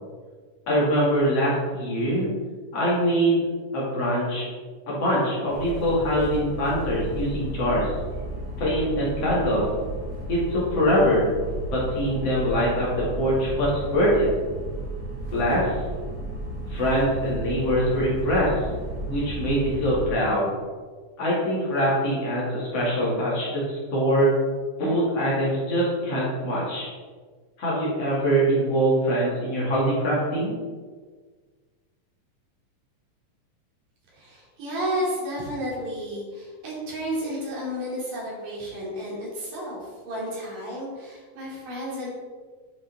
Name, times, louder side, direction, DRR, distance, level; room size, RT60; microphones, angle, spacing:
voice 1, 0.7-2.3 2.7-3.4 3.7-4.4 4.9-7.9 8.6-9.7 10.3-11.3 11.7-14.3 15.3-15.8 16.7-18.6 19.1-20.5 21.2-24.3 24.8-26.9 27.6-30.5, equal, 50° left, -7 dB, 3.3 m, -23 dB
sound 1, 5.5-20.1, right 2 dB, 55° right, 2.5 m, -34 dB
voice 2, 34.1-42.1, equal, 80° right, -6 dB, 4.3 m, -32 dB
9.8 x 5.4 x 4.1 m, 1.5 s
omnidirectional pair, 3.7 m